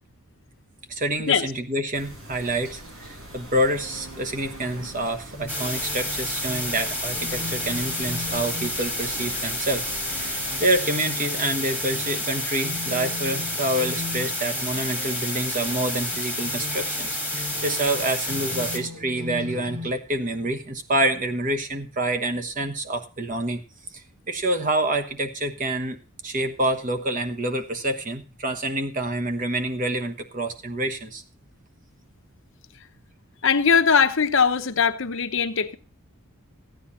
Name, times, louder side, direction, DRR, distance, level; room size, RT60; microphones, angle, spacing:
voice 1, 0.9-23.6 23.9-31.2, right 1 dB, 35° right, 1.2 m, -27 dB
sound 1, 1.9-10.8, right 1 dB, 70° right, 5.3 m, -43 dB
sound 2, 3.8-19.9, left 2 dB, 85° right, 2.6 m, -39 dB
sound 3, 5.5-18.8, left 1 dB, 10° right, 1.7 m, -30 dB
voice 2, 33.4-35.8, left 6 dB, 60° left, 0.9 m, -20 dB
14.5 x 9.5 x 4.1 m
head